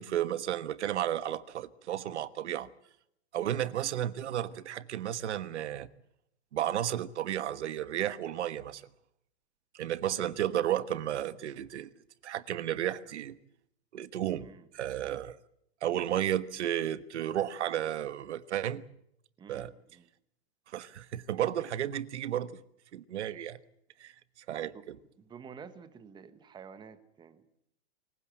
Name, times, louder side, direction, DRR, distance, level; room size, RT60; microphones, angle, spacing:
voice 1, 0.0-2.7 3.3-5.9 6.5-8.8 9.7-11.9 12.2-13.4 13.9-14.5 14.7-15.4 15.8-18.8 19.5-19.7 20.7-22.6 22.9-23.6 24.0-24.1 24.5-24.9, right 11 dB, 85° right, 1.3 m, -33 dB
voice 2, 19.4-20.1 24.6-24.8 25.2-27.4, right 6 dB, 15° right, 1.3 m, -50 dB
25.0 x 16.0 x 9.1 m
supercardioid pair, 155°, 34 cm